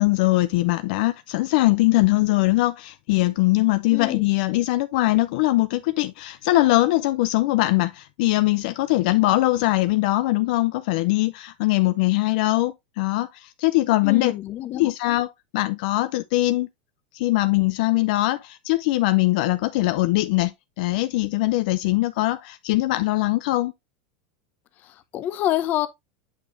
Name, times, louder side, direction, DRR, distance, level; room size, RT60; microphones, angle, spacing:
voice 1, 0.0-14.3 14.7-16.7 17.1-23.7, left 18 dB, 65° left, 0.5 m, -21 dB
voice 2, 3.9-4.2 14.0-14.9 24.8-25.9, left 13 dB, 35° left, 0.8 m, -27 dB
8.6 x 5.0 x 2.6 m
supercardioid pair, 140°, 5 cm